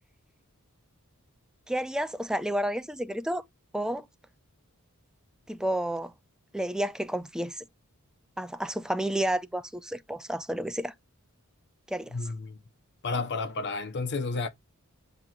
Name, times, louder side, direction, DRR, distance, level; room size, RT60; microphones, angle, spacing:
voice 1, 1.7-3.4 3.7-4.1 5.5-6.1 6.5-7.7 8.4-10.9 11.9-12.1, right 1 dB, 5° right, 0.4 m, -30 dB
voice 2, 12.1-12.6 13.0-14.5, left 3 dB, 50° left, 0.7 m, -31 dB
9.0 x 4.6 x 2.3 m
head